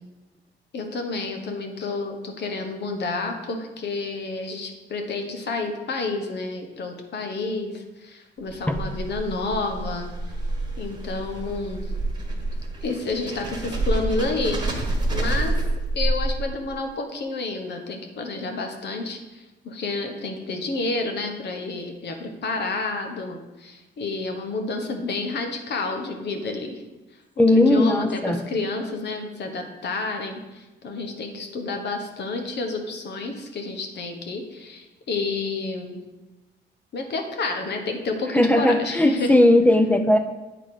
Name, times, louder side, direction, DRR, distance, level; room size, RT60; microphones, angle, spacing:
voice 1, 0.7-10.1 10.8-11.9 12.8-14.6 15.1-15.6 15.9-26.8 27.4-36.0 36.9-39.3, left 3 dB, 60° left, 4 dB, 1.2 m, -30 dB
sound 1, 8.4-16.7, right 2 dB, 20° right, 1.4 m, -28 dB
voice 2, 27.4-28.4 38.3-40.2, left 1 dB, 10° left, 6 dB, 0.6 m, -18 dB
8.9 x 4.1 x 4.9 m, 1.1 s
cardioid pair, 90°, 20 cm